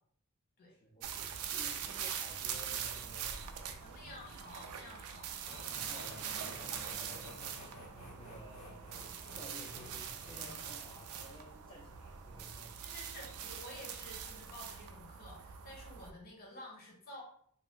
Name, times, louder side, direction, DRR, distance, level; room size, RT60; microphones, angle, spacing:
voice 1, 0.7-3.8 5.7-7.8 8.1-9.0 9.3-12.9, equal, 20° left, -5 dB, 0.5 m, -54 dB
sound 1, 1.0-16.1, right 8 dB, 85° right, 0.4 m, -43 dB
voice 2, 3.8-5.4 12.7-17.2, left 1 dB, 45° left, -1 dB, 0.9 m, -51 dB
sound 2, 5.4-11.3, equal, 75° left, 1.3 m, -52 dB
2.5 x 2.2 x 3.5 m, 0.63 s
head